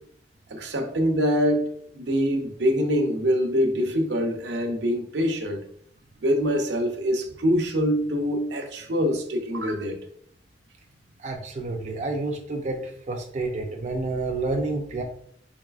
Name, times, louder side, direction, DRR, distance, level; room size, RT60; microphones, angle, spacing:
voice 1, 0.5-5.6 6.2-10.0, equal, 80° right, 0.6 m, -24 dB
voice 2, 11.2-12.8 13.1-15.0, right 3 dB, 40° right, 0.4 m, -29 dB
3.8 x 3.6 x 2.3 m
head